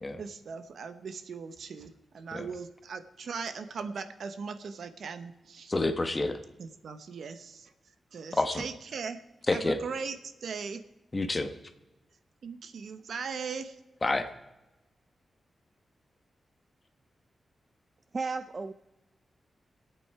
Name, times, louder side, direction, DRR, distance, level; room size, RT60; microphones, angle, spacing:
voice 1, 0.2-5.7 6.6-7.7 8.1-9.2 9.5-10.8 12.4-13.8, right 5 dB, 75° right, 10 dB, 1.0 m, -39 dB
voice 2, 5.7-6.4 8.4-8.6 9.5-9.8 11.1-11.5 14.0-14.3, left 2 dB, 25° left, 8 dB, 1.1 m, -28 dB
voice 3, 18.1-18.7, right 4 dB, 35° right, 10 dB, 0.5 m, -33 dB
25.5 x 8.7 x 4.8 m, 1.0 s
wide cardioid pair, 135°, 0 cm